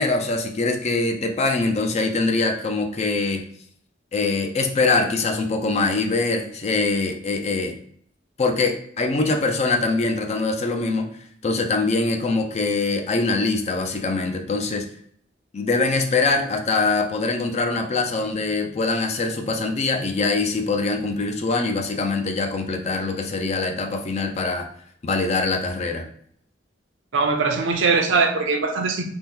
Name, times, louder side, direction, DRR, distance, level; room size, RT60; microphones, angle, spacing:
voice 1, 0.0-3.4 4.1-7.8 8.4-11.1 11.4-14.9 15.5-24.7 25.0-26.0, left 3 dB, 35° left, 4 dB, 0.4 m, -23 dB
voice 2, 27.1-29.0, right 4 dB, 90° right, 4 dB, 0.5 m, -21 dB
2.9 x 2.1 x 3.4 m, 0.63 s
head